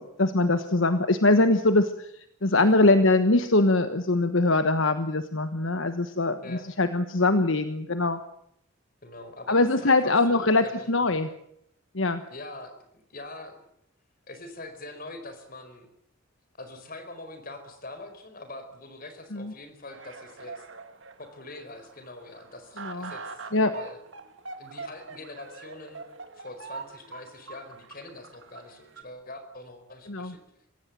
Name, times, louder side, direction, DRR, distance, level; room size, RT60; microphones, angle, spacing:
voice 1, 0.0-2.1 2.4-8.2 9.5-11.3 11.9-12.2 19.3-19.5 22.8-23.1 23.5-23.7 30.1-30.3, left 2 dB, 65° left, 10 dB, 1.3 m, -22 dB
voice 2, 9.0-11.2 12.3-13.6 14.3-15.9 16.6-20.7 21.2-24.0 24.6-26.0 26.3-30.4, left 2 dB, 45° left, 8 dB, 4.7 m, -43 dB
sound 1, 19.9-29.0, right 4 dB, 60° right, 2.4 m, -44 dB
25.0 x 16.5 x 9.4 m, 0.74 s
head